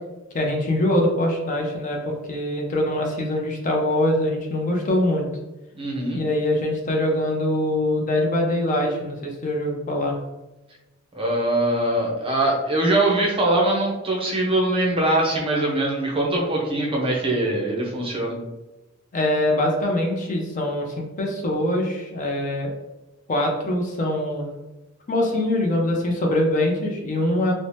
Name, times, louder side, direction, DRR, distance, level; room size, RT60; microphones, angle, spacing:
voice 1, 0.3-5.3 6.1-10.2 19.1-22.7 23.3-24.5 25.1-27.5, left 1 dB, 40° left, 1 dB, 0.5 m, -23 dB
voice 2, 5.8-6.2 11.1-18.3, right 1 dB, 25° right, -1 dB, 0.5 m, -22 dB
2.7 x 2.0 x 3.1 m, 1.0 s
head